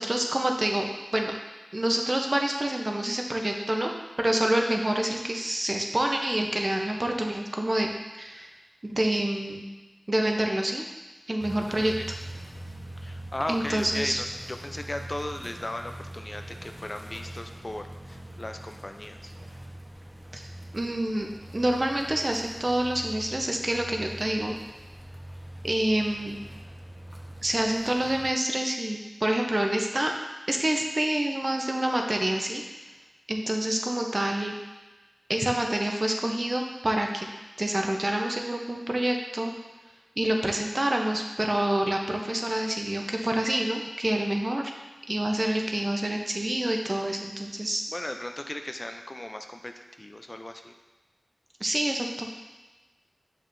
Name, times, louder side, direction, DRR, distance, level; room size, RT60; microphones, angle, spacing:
voice 1, 0.0-1.3 1.7-3.9 4.2-8.5 8.8-9.7 10.1-10.8 11.3-11.9 13.5-14.2 20.3-20.4 20.7-24.6 25.6-26.4 27.4-30.1 30.5-32.6 33.3-34.5 35.3-37.3 37.6-39.5 40.2-44.7 45.1-47.8 51.6-52.3, right 1 dB, 40° right, 2 dB, 0.7 m, -27 dB
sound 1, 11.4-28.3, right 1 dB, 10° right, 0.9 m, -43 dB
voice 2, 11.7-12.1 13.0-19.3 47.9-49.7 50.0-50.7, left 1 dB, 35° left, 6 dB, 0.4 m, -36 dB
6.9 x 5.4 x 2.6 m, 1.2 s
wide cardioid pair, 65°, 0 cm